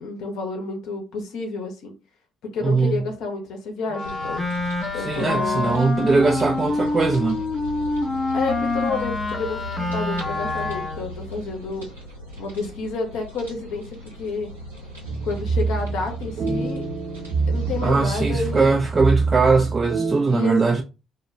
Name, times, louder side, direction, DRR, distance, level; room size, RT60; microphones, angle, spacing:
voice 1, 0.0-1.9 2.5-4.4 4.9-5.9 8.3-11.9 12.4-14.5 15.2-16.8 17.5-18.8 20.3-20.6, left 3 dB, 65° left, 0.6 m, -30 dB
voice 2, 2.6-3.1 5.0-7.4 17.8-20.8, right 4 dB, 35° right, 0.4 m, -20 dB
Wind instrument woodwind instrument, 3.9-11.1, left 2 dB, 25° left, 0.7 m, -26 dB
sound 1, 4.0-18.6, left 1 dB, 90° right, 0.8 m, -39 dB
sound 2, 15.0-20.1, right 4 dB, 50° right, 0.7 m, -25 dB
2.2 x 2.1 x 3.2 m
figure-of-eight pair, 45°, 0 cm